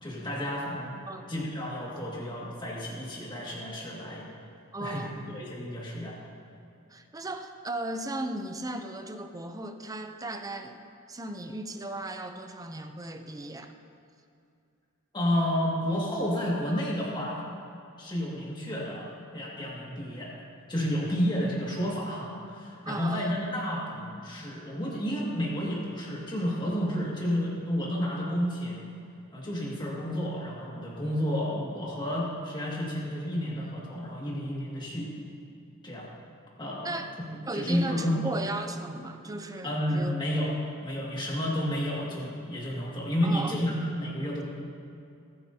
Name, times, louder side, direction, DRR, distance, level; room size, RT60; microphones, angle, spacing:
voice 1, 0.0-1.0 1.3-4.3 4.8-5.0 5.3-6.2 15.1-17.4 18.0-20.3 20.7-28.8 29.3-35.1 35.8-36.1 36.6-37.0 37.5-38.3 39.6-40.6 40.8-44.4, equal, 20° left, -5 dB, 2.2 m, -31 dB
voice 2, 4.7-5.2 6.9-10.8 11.1-13.7 22.9-23.3 36.8-37.1 37.5-40.1 43.2-43.6, right 2 dB, 15° right, 6 dB, 0.7 m, -36 dB
21.5 x 9.3 x 2.9 m, 2.5 s
head